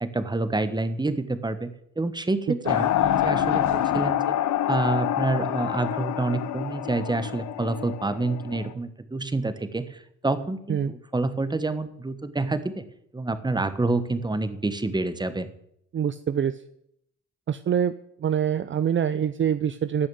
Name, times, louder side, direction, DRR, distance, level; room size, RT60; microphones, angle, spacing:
voice 1, 0.0-4.4 4.7-12.8 13.1-15.5, right 2 dB, 15° right, 12 dB, 1.3 m, -28 dB
sound 1, 2.7-8.7, left 11 dB, 70° left, 0.9 m, -26 dB
voice 2, 15.9-16.6 17.5-17.9 18.2-20.1, right 8 dB, 40° right, 13 dB, 0.6 m, -25 dB
14.0 x 6.4 x 9.3 m, 0.75 s
cardioid pair, 90°, 30 cm